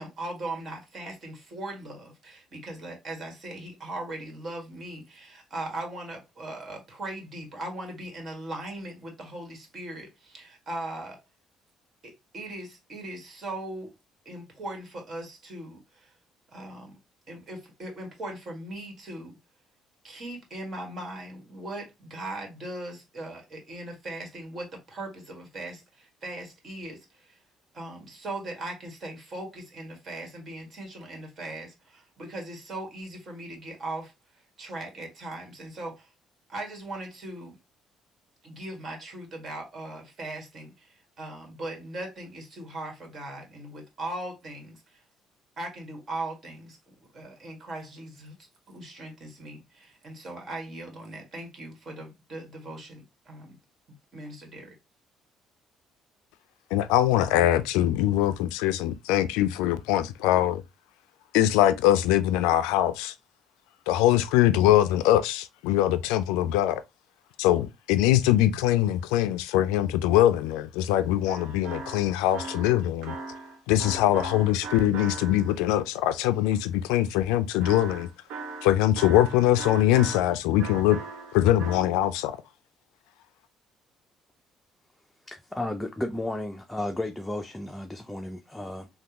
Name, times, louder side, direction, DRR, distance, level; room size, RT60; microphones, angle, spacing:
voice 1, 0.0-11.2 12.0-13.9 14.2-16.1 16.5-17.0 17.3-19.4 20.0-27.4 27.7-34.1 34.6-36.1 36.5-37.6 38.4-45.0 45.6-48.3 48.7-53.6 54.1-54.7, right 2 dB, 50° right, 1.6 m, -39 dB
voice 2, 56.7-60.6 61.3-63.1 63.9-66.8 67.4-73.2 73.7-78.1 78.6-81.0 81.3-82.4, left 13 dB, 90° left, 0.3 m, -22 dB
sound 1, 70.9-75.7 77.6-80.3 80.6-81.8, right 4 dB, 80° right, 0.6 m, -39 dB
voice 3, 85.3-88.9, left 1 dB, 10° left, 0.5 m, -33 dB
3.3 x 2.3 x 2.9 m
supercardioid pair, 70°, 0 cm